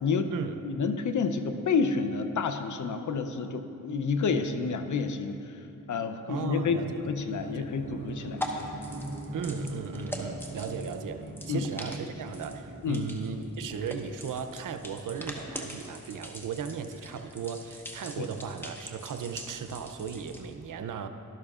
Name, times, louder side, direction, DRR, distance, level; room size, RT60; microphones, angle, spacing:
voice 1, 0.0-0.3 0.6-5.6 5.9-6.8 7.1-8.4 11.5-11.7 12.8-13.0 18.2-18.3, left 5 dB, 65° left, 9 dB, 0.7 m, -29 dB
voice 2, 6.3-7.0 7.4-7.7 9.3-21.1, right 6 dB, 75° right, 8 dB, 0.6 m, -36 dB
sound 1, 6.8-14.4, right 1 dB, 50° right, 1.6 m, -41 dB
sound 2, 7.3-20.5, equal, 5° left, 1.2 m, -43 dB
12.0 x 11.5 x 2.4 m, 2.7 s
cardioid pair, 50°, 32 cm